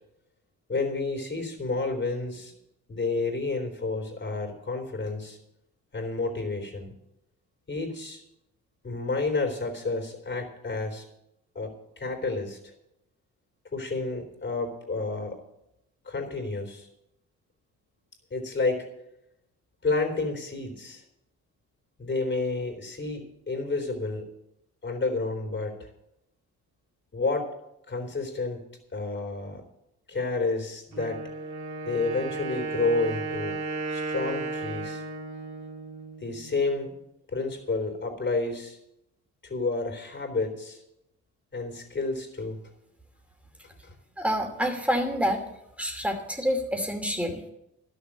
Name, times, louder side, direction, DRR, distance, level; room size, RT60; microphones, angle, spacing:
voice 1, 0.7-2.5 2.9-5.4 5.9-6.9 7.7-8.2 8.8-11.1 11.6-12.6 13.7-15.4 16.1-16.9 18.3-18.9 19.8-21.0 22.0-24.3 24.8-25.9 27.1-27.5 27.9-28.6 28.9-29.6 30.1-31.2 31.9-33.6 33.9-35.0 36.2-36.9 37.3-38.8 39.4-40.8 41.5-42.6 43.8-43.9, left 3 dB, 35° left, 3 dB, 3.8 m, -30 dB
Wind instrument woodwind instrument, 30.9-36.7, right 3 dB, 65° right, 2.1 m, -34 dB
voice 2, 44.2-45.4 45.8-47.4, equal, 5° right, 4 dB, 2.7 m, -27 dB
12.0 x 7.0 x 8.9 m, 0.83 s
cardioid pair, 90°, 30 cm